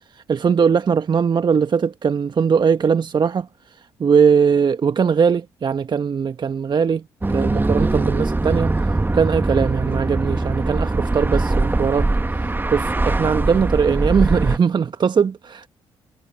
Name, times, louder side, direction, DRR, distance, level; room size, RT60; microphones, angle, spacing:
voice 1, 0.1-7.0 7.3-15.7, right 6 dB, 45° right, 1.1 m, -20 dB
sound 1, 7.2-14.6, right 2 dB, 20° right, 1.6 m, -21 dB
hypercardioid pair, 45°, 11 cm